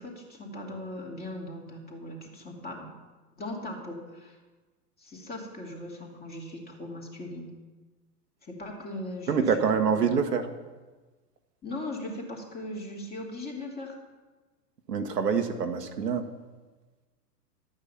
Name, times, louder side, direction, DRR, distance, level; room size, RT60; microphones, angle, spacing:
voice 1, 0.0-2.9 3.3-4.4 5.0-7.5 8.4-9.6 9.9-10.1 11.6-13.9, left 1 dB, 20° left, 0 dB, 2.6 m, -39 dB
voice 2, 9.3-10.5 14.9-16.3, right 6 dB, 85° right, 6 dB, 1.3 m, -26 dB
12.0 x 8.9 x 5.6 m, 1.3 s
hypercardioid pair, 110°, 47 cm